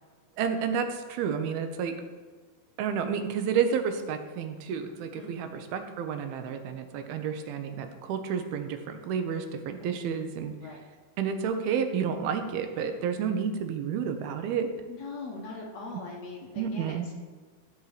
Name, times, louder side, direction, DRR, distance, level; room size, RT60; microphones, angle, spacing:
voice 1, 0.4-2.0 2.8-10.5 11.2-14.7 16.6-17.1, right 7 dB, 85° right, 7 dB, 2.8 m, -30 dB
voice 2, 5.1-5.5 9.8-9.9 10.6-10.8 14.9-17.2, left 3 dB, 60° left, -1 dB, 1.9 m, -41 dB
14.5 x 5.5 x 4.9 m, 1.5 s
omnidirectional pair, 4.3 m